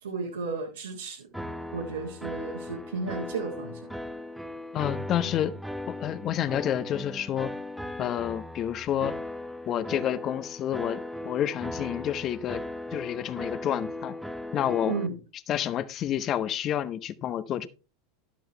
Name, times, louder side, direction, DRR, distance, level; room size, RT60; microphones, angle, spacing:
voice 1, 0.0-1.3 1.7-3.9 14.9-15.1, right 4 dB, 80° right, 1.7 m, -33 dB
sound 1, 1.3-15.1, left 1 dB, ahead, 0.8 m, -38 dB
voice 2, 4.7-5.5 5.9-7.5 8.0-9.2 9.7-12.6 12.9-14.2 14.5-15.0 15.5-17.7, left 10 dB, 40° left, 0.8 m, -29 dB
12.0 x 7.7 x 3.3 m
figure-of-eight pair, 80°, 0 cm